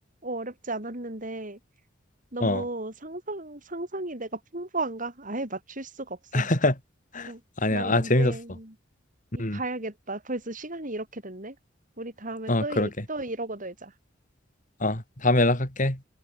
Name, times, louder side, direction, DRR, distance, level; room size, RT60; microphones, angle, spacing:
voice 1, 0.2-1.6 2.3-6.5 7.3-7.4 7.7-8.7 9.3-11.6 12.0-13.9, right 2 dB, 45° right, 5.8 m, -35 dB
voice 2, 6.3-6.8 7.1-7.3 7.6-8.4 9.4-9.6 12.5-12.9 14.8-16.0, left 2 dB, 45° left, 5.2 m, -24 dB
head